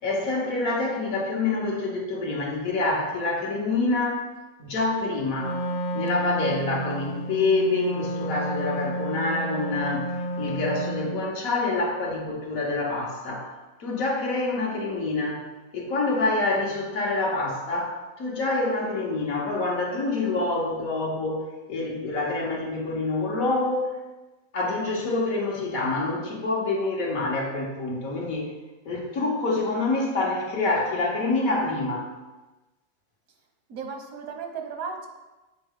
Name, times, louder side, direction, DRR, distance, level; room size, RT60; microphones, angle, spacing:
voice 1, 0.0-4.3 4.6-5.6 5.9-13.5 13.8-15.4 15.7-24.0 24.5-28.5 28.8-32.1, left 2 dB, 80° left, -1 dB, 1.6 m, -26 dB
Wind instrument woodwind instrument, 5.3-11.3, right 1 dB, 65° left, 0.4 m, -31 dB
voice 2, 33.7-35.1, right 5 dB, 85° right, 4 dB, 1.3 m, -35 dB
7.6 x 4.5 x 3.6 m, 1.1 s
omnidirectional pair, 1.4 m